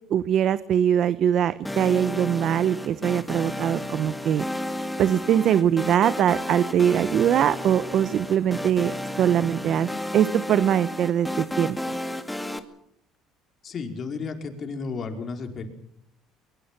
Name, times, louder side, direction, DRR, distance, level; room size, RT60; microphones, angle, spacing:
voice 1, 0.1-4.4 5.0-11.8, right 9 dB, 55° right, 14 dB, 0.9 m, -22 dB
sound 1, 1.6-12.6, left 1 dB, 5° left, 2.1 m, -33 dB
voice 2, 13.6-15.7, left 4 dB, 40° left, 5 dB, 4.7 m, -33 dB
23.0 x 23.0 x 6.1 m, 0.71 s
cardioid pair, 110°, 0 cm